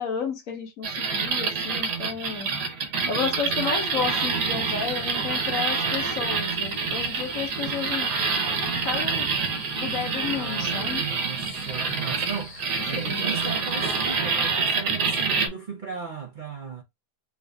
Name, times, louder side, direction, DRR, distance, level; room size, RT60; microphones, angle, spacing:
voice 1, 0.0-2.5 3.1-8.1 8.7-9.3 9.8-11.0 12.9-13.6, left 6 dB, 60° left, 1.2 m, -32 dB
sound 1, 0.8-15.5, right 5 dB, 85° right, 1.5 m, -27 dB
sound 2, 3.5-14.2, left 2 dB, 35° left, 1.1 m, -44 dB
voice 2, 10.3-16.8, right 5 dB, 60° right, 0.5 m, -36 dB
3.6 x 2.4 x 3.3 m
omnidirectional pair, 1.7 m